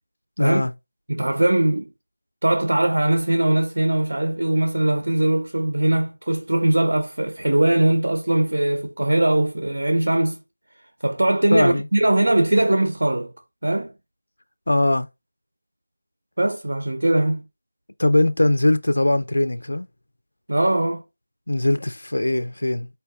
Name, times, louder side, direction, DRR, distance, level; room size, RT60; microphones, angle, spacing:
voice 1, 0.4-0.7 11.5-11.8 14.7-15.1 18.0-19.9 21.5-22.9, left 1 dB, 85° left, 0.4 m, -20 dB
voice 2, 1.1-1.9 2.4-10.4 11.0-13.3 13.6-13.9 16.4-17.4 20.5-21.0, right 1 dB, 80° right, 0.5 m, -20 dB
4.5 x 2.2 x 3.6 m
figure-of-eight pair, 170°, 0 cm